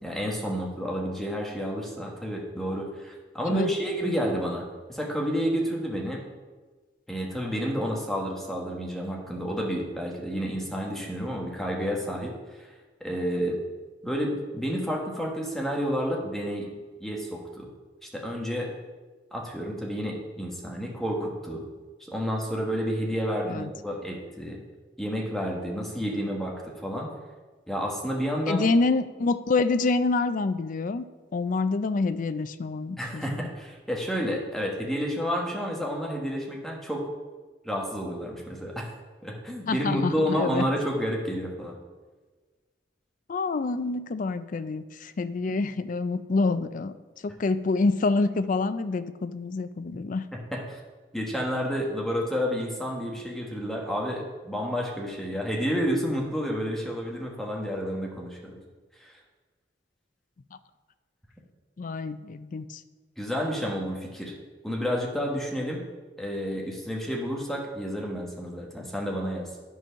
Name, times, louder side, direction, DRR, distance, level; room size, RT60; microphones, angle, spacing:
voice 1, 0.0-4.6 4.9-6.2 7.1-12.7 13.0-13.6 14.0-16.7 17.0-17.7 18.1-18.7 19.3-21.6 22.1-24.6 25.0-27.1 27.7-28.6 33.0-37.1 37.6-38.9 39.2-41.8 50.5-50.8 51.1-58.6 59.0-59.2 63.2-64.3 64.6-65.8 66.2-69.5, equal, ahead, -1 dB, 1.4 m, -30 dB
voice 2, 28.5-31.0 31.3-33.5 39.7-40.7 43.3-46.9 47.2-50.2 61.8-62.8, left 3 dB, 50° left, 13 dB, 0.4 m, -27 dB
10.0 x 4.5 x 5.7 m, 1.3 s
head